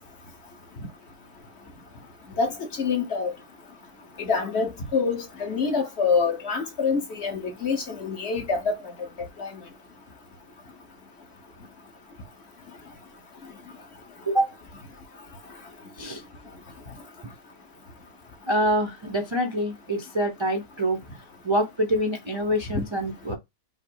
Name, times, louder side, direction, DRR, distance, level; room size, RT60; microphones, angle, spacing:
voice 1, 2.8-3.3 4.2-8.7 9.4-9.6, left 5 dB, 50° left, 1.3 m, -26 dB
voice 2, 18.5-21.0 21.4-23.4, right 1 dB, 30° right, 0.5 m, -25 dB
5.7 x 2.1 x 4.5 m
omnidirectional pair, 1.5 m